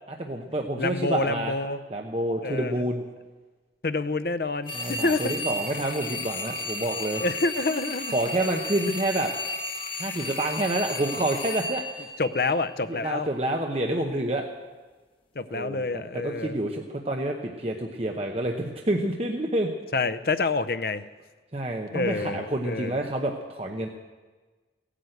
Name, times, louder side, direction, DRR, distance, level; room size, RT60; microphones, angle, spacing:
voice 1, 0.2-1.5 1.9-3.0 4.7-7.2 8.1-9.3 10.0-12.1 12.9-14.5 15.5-19.7 21.5-23.9, right 1 dB, 35° right, 2 dB, 0.9 m, -28 dB
voice 2, 0.8-1.8 2.4-2.9 3.8-5.4 7.1-8.2 12.2-13.3 15.4-16.6 19.9-21.0 21.9-23.0, left 3 dB, 55° left, 12 dB, 0.6 m, -28 dB
sound 1, 4.7-12.8, left 2 dB, 30° left, 1.4 m, -34 dB
16.0 x 10.0 x 7.9 m, 1.3 s
head